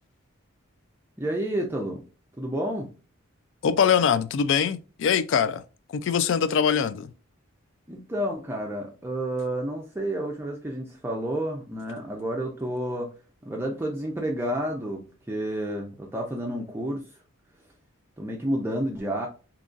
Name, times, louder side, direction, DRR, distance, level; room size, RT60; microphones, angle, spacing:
voice 1, 1.2-2.1 2.4-2.9 7.9-13.1 13.4-17.1 18.2-19.3, right 1 dB, 10° right, 0.4 m, -30 dB
voice 2, 3.6-5.6 5.9-7.1, left 7 dB, 60° left, 0.3 m, -23 dB
3.7 x 2.9 x 2.4 m
head